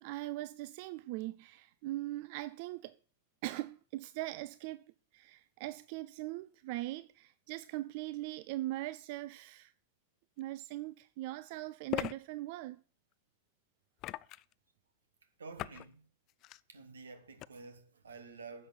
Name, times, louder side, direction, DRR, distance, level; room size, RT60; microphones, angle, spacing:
voice 1, 0.0-2.9 3.4-4.8 5.1-9.7 10.4-12.8, right 17 dB, 55° right, 0.5 m, -40 dB
sound 1, 10.4-10.5 11.9-12.1 14.0-14.5 15.6-15.9 16.3-16.6 17.4-17.5, left 16 dB, 45° left, 0.4 m, -38 dB
voice 2, 15.4-16.0 16.7-18.7, right 4 dB, 90° right, 1.9 m, -50 dB
10.0 x 6.4 x 7.9 m
hypercardioid pair, 105°, 0 cm